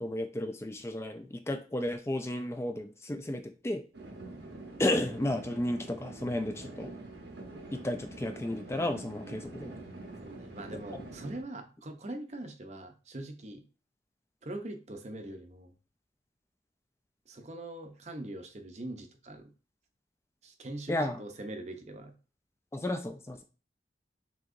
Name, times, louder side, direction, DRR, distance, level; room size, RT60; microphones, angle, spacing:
voice 1, 0.0-3.8 4.8-6.9 7.7-9.8 20.9-21.2 22.7-23.4, left 1 dB, 15° left, 7 dB, 0.4 m, -33 dB
sound 1, 3.9-11.4, right 2 dB, 75° right, 1.0 m, -45 dB
voice 2, 10.2-13.6 14.4-15.7 17.3-19.5 20.4-22.1, right 1 dB, 40° right, 6 dB, 0.6 m, -42 dB
6.2 x 2.9 x 2.5 m, 0.35 s
head